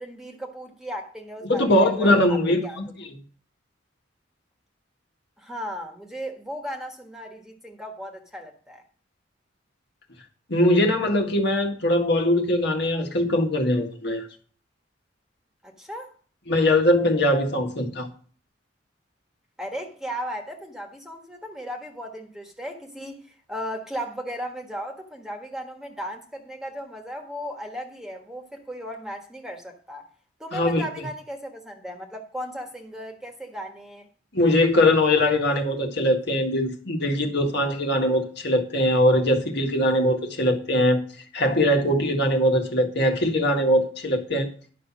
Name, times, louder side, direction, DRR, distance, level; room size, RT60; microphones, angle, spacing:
voice 1, 0.0-2.8 5.4-8.8 15.6-16.1 19.6-30.1 30.4-34.1, equal, 5° right, 1.4 m, -36 dB
voice 2, 1.5-2.8 10.5-14.2 16.5-18.1 30.5-30.8 34.3-41.0 41.3-44.5, left 1 dB, 60° left, 1.7 m, -21 dB
11.0 x 5.8 x 6.0 m
head